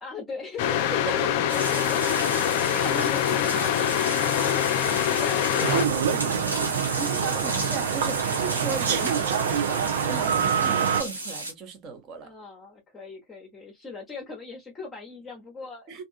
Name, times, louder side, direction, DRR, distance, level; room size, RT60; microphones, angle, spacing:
voice 1, 0.0-2.2 4.5-7.4 12.2-16.0, left 4 dB, 15° left, 0.9 m, -40 dB
sound 1, 0.6-5.9, left 10 dB, 45° left, 0.4 m, -24 dB
voice 2, 1.0-1.5 2.4-3.8 7.0-12.3 15.9-16.0, right 5 dB, 35° right, 1.1 m, -37 dB
sound 2, 1.5-11.5, right 1 dB, 85° right, 1.3 m, -33 dB
sound 3, 5.6-11.0, right 7 dB, 55° right, 0.7 m, -25 dB
3.5 x 2.5 x 2.3 m
figure-of-eight pair, 90°, 0 cm